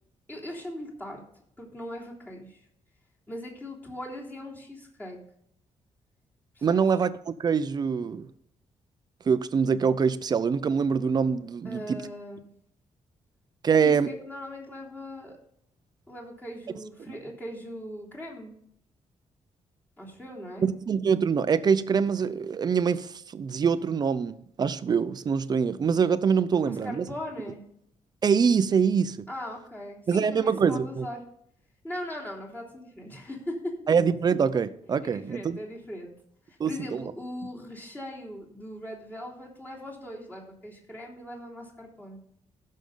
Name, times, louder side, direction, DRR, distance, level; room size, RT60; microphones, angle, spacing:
voice 1, 0.3-1.2 1.6-2.7 3.3-5.2 6.5-7.0 11.6-12.5 13.8-15.4 16.1-18.5 20.0-20.7 26.6-27.6 29.3-31.2 31.8-33.8 35.0-36.1 36.5-42.2, left 1 dB, 15° left, 3.3 m, -39 dB
voice 2, 6.6-8.3 9.3-12.0 13.6-14.1 17.1-17.2 20.6-27.0 28.2-29.3 30.1-31.1 33.9-35.6 36.6-37.0, right 6 dB, 35° right, 0.6 m, -24 dB
15.5 x 6.5 x 3.9 m
wide cardioid pair, 160°, 12 cm